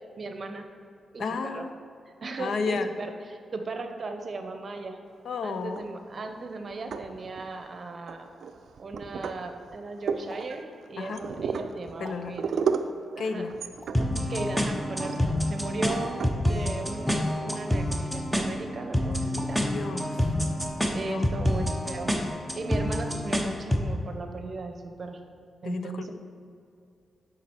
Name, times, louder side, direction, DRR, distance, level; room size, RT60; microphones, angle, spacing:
voice 1, 0.2-0.7 1.1-1.7 2.2-5.0 5.4-8.3 8.8-12.5 13.1-13.4 14.3-15.2 15.5-19.6 20.9-25.2 25.6-26.1, right 3 dB, 45° right, 6 dB, 0.7 m, -37 dB
voice 2, 1.2-1.7 2.4-2.9 5.2-5.9 11.0-11.2 12.0-12.4 13.2-13.5 14.0-14.3 19.6-20.2 21.0-21.3 25.6-26.1, left 4 dB, 70° left, 9 dB, 0.4 m, -32 dB
sound 1, 5.6-6.2 6.7-7.6 8.1-18.0, right 6 dB, 75° right, 0.4 m, -35 dB
sound 2, 10.3-10.4 12.0-12.2 13.8-13.9 15.9-16.0 17.5-17.6 19.3-19.5, left 2 dB, 35° left, 0.8 m, -44 dB
sound 3, 13.9-23.9, left 1 dB, ahead, 0.7 m, -28 dB
7.3 x 5.1 x 4.5 m, 2.5 s
cardioid pair, 90°, 0 cm